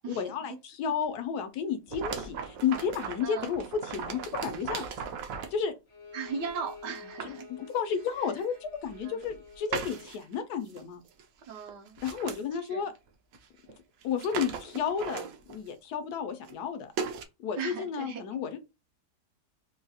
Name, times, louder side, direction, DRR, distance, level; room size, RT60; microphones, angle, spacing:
voice 1, 0.1-4.8 5.5-5.7 7.2-7.4 7.7-11.0 12.0-12.9 14.0-16.9 17.4-18.6, left 7 dB, 75° left, 1.1 m, -32 dB
sound 1, 1.9-5.6 6.4-6.5 6.9-7.4 8.1-8.2 8.9-9.4 9.7-10.3 10.7-10.8 11.1-11.2 11.5-12.4 13.3-13.4 13.7-13.8 14.0-15.7 16.4-16.6 17.0-17.2, right 6 dB, 65° right, 0.9 m, -37 dB
voice 2, 3.2-3.5 6.1-7.5 9.0-9.3 11.5-12.0 12.7-12.8 17.6-18.4, right 6 dB, 85° right, 1.5 m, -38 dB
Bowed string instrument, 5.9-10.1, left 5 dB, 45° left, 0.4 m, -49 dB
3.6 x 2.3 x 2.7 m
omnidirectional pair, 1.8 m